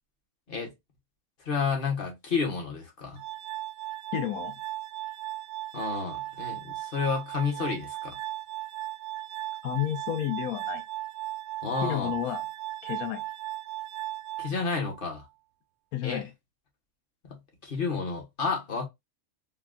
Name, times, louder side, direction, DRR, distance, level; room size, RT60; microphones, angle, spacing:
voice 1, 1.5-3.2 5.7-8.1 11.6-12.1 14.4-15.2 16.0-16.2 17.6-18.8, left 5 dB, 40° left, 1.0 m, -30 dB
Glass, 3.2-15.2, right 15 dB, 80° right, 1.0 m, -37 dB
voice 2, 4.1-4.5 9.6-10.8 11.8-12.4 12.8-13.2 15.9-16.3, left 11 dB, 80° left, 1.2 m, -31 dB
3.5 x 2.2 x 2.4 m
omnidirectional pair, 1.5 m